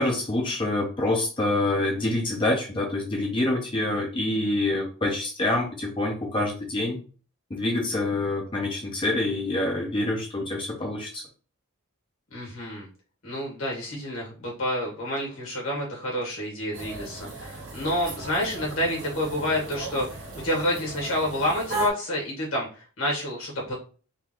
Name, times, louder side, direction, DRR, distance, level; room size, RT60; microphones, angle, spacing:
voice 1, 0.0-7.0 7.5-11.2, left 2 dB, 25° left, 0 dB, 0.5 m, -26 dB
voice 2, 12.3-12.9 13.2-23.7, left 1 dB, 65° left, -2 dB, 1.8 m, -29 dB
sound 1, 16.7-21.9, right 3 dB, 60° right, 1.6 m, -36 dB
3.8 x 2.6 x 3.0 m, 0.37 s
head